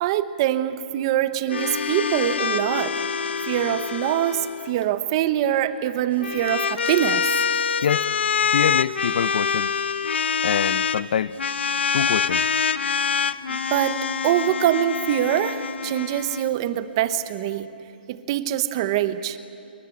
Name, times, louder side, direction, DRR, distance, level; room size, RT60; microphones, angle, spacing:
voice 1, 0.0-3.0 3.4-7.3 13.5-17.7 18.1-19.4, right 12 dB, 25° right, 0.9 m, -24 dB
sound 1, 1.5-4.7 6.0-11.0 11.4-16.5, left 6 dB, 85° left, 1.0 m, -25 dB
voice 2, 8.5-9.7 10.4-11.4 11.9-12.5, left 8 dB, 50° left, 0.6 m, -25 dB
28.0 x 23.0 x 8.6 m
hypercardioid pair, 170°, 6 cm